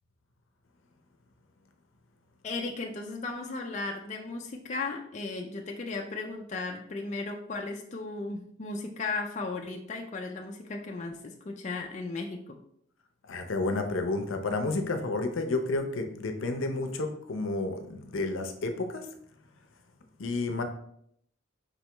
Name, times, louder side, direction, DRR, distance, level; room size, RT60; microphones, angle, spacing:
voice 1, 2.4-12.4, left 3 dB, 35° left, 2 dB, 0.4 m, -36 dB
voice 2, 13.2-19.1 20.2-20.6, left 2 dB, 75° left, 6 dB, 0.6 m, -31 dB
5.2 x 3.3 x 2.9 m, 0.69 s
head